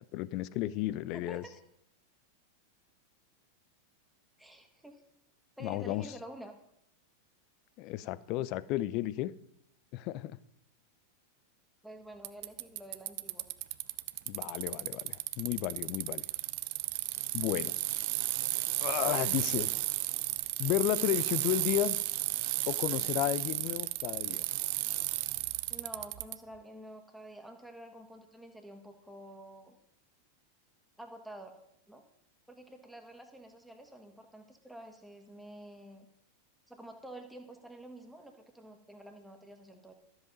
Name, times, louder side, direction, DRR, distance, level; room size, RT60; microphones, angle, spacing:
voice 1, 0.1-1.4 5.6-6.1 7.8-9.3 9.9-10.4 14.3-16.2 17.3-17.7 18.8-19.7 20.6-22.0 22.7-24.4, left 15 dB, 40° left, 19 dB, 0.5 m, -33 dB
voice 2, 0.9-1.6 4.4-5.0 5.6-6.5 11.8-13.5 22.9-23.2 25.7-29.8 31.0-31.6 31.9-32.0 32.5-36.1 36.7-39.9, right 1 dB, ahead, 4 dB, 1.8 m, -49 dB
Bicycle, 12.2-26.4, right 19 dB, 45° right, 0.5 m, -33 dB
13.0 x 7.9 x 5.4 m, 0.77 s
figure-of-eight pair, 90°, 0 cm